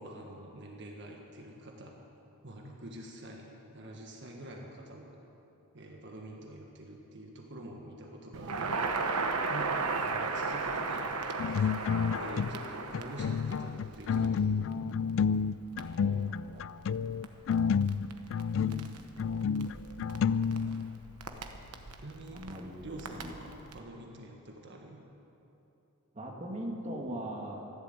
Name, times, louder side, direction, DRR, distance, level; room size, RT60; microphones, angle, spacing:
voice 1, 0.0-2.0 2.4-3.5 3.7-5.1 5.7-9.0 9.5-11.8 12.1-14.7 22.0-22.4 22.8-25.0, right 1 dB, 55° right, 0 dB, 1.5 m, -46 dB
Crackle, 8.3-23.8, right 4 dB, 90° right, 1.1 m, -37 dB
sound 1, 11.4-12.7 12.9-21.1, left 6 dB, 60° left, 0.3 m, -30 dB
voice 2, 16.0-16.7 18.5-19.0 22.3-22.8 23.2-23.3 26.1-27.6, right 1 dB, 30° right, 0 dB, 1.7 m, -40 dB
14.5 x 11.5 x 8.0 m, 3.0 s
head